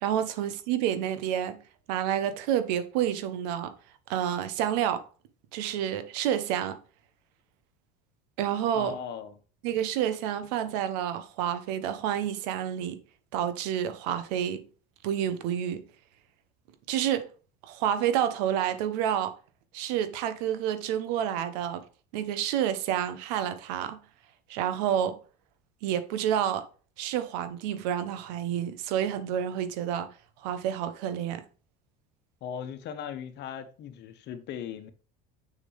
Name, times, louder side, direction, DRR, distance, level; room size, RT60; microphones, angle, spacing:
voice 1, 0.0-1.6 1.9-3.7 4.1-5.0 5.5-6.8 8.4-9.0 9.6-13.0 13.3-14.6 15.0-15.8 16.9-17.3 17.6-19.4 19.7-21.8 22.1-24.0 24.5-25.2 25.8-26.7 27.0-30.1 30.4-31.4, right 10 dB, 80° right, 1.1 m, -29 dB
voice 2, 8.7-9.4 32.4-34.9, left 8 dB, 55° left, 1.3 m, -38 dB
6.6 x 6.2 x 3.5 m
supercardioid pair, 95°, 21 cm